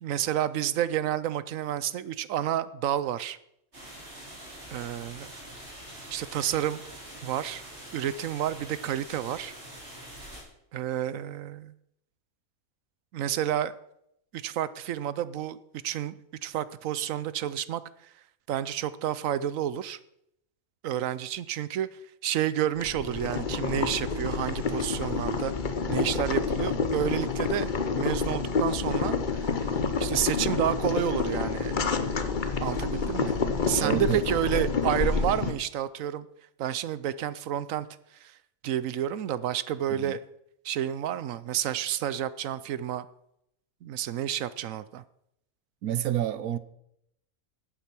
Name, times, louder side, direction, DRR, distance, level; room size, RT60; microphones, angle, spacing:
voice 1, 0.0-3.4 4.7-5.3 6.1-6.8 7.2-7.6 7.9-9.5 10.7-11.7 13.1-13.7 14.3-15.6 15.8-17.8 18.5-20.0 20.8-21.9 22.2-25.5 25.9-29.7 30.0-31.8 32.6-33.4 33.7-36.3 36.6-37.9 38.2-38.3 38.6-40.2 40.6-43.1 43.8-45.0, right 11 dB, 70° right, 1.0 m, -30 dB
sound 1, 3.7-10.4, right 1 dB, 50° right, 4.7 m, -45 dB
Boiling, 22.8-35.5, left 4 dB, 40° left, 0.9 m, -28 dB
voice 2, 33.8-34.2 39.9-40.2 45.8-46.6, right 11 dB, 90° right, 1.2 m, -29 dB
12.0 x 8.8 x 6.0 m
omnidirectional pair, 1.5 m